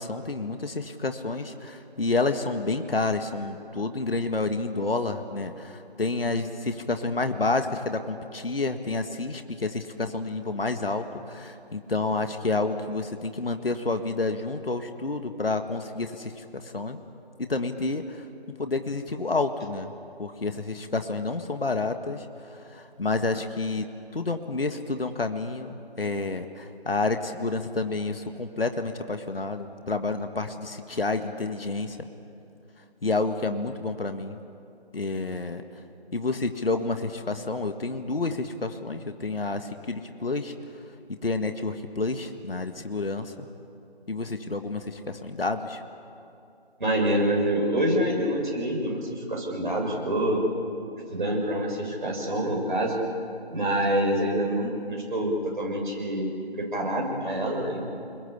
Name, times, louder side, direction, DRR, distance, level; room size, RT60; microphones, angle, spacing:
voice 1, 0.0-17.0 17.4-18.3 18.6-19.9 20.2-23.9 24.1-32.1 33.0-34.4 34.9-35.6 36.1-40.5 41.1-43.5 44.1-45.8, left 3 dB, 65° left, 7 dB, 1.8 m, -29 dB
voice 2, 46.8-50.4 51.1-52.9 53.5-57.8, right 1 dB, 50° right, -1 dB, 6.9 m, -26 dB
29.5 x 21.5 x 8.3 m, 2.6 s
figure-of-eight pair, 170°, 31 cm